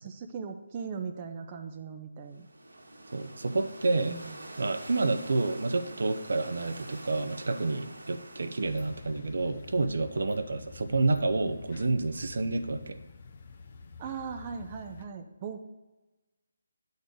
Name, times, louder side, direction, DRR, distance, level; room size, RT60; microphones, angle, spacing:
voice 1, 0.0-2.5 4.1-4.3 14.0-15.6, right 6 dB, 25° right, 4 dB, 0.5 m, -39 dB
sound 1, 2.3-9.4, right 1 dB, 85° right, 1.4 m, -46 dB
voice 2, 3.1-4.2 4.6-13.0, right 3 dB, 70° right, 8 dB, 0.6 m, -29 dB
sound 2, 8.6-15.1, left 5 dB, 45° left, 0.6 m, -48 dB
8.1 x 4.0 x 5.2 m, 1.2 s
figure-of-eight pair, 160°, 0 cm